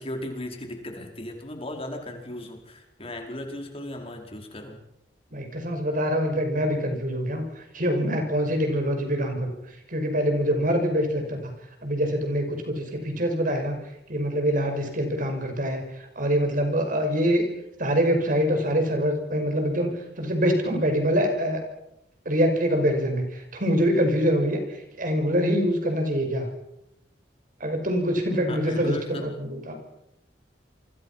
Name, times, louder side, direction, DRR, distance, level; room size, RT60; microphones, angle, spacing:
voice 1, 0.0-4.8 28.5-29.3, left 1 dB, 35° left, 3 dB, 4.8 m, -36 dB
voice 2, 5.3-9.5 9.9-11.5 11.8-13.8 14.1-15.8 16.2-17.5 17.8-21.6 22.3-24.6 25.0-26.5 27.6-29.8, equal, 50° right, 5 dB, 5.9 m, -24 dB
28.5 x 24.5 x 5.9 m, 0.84 s
head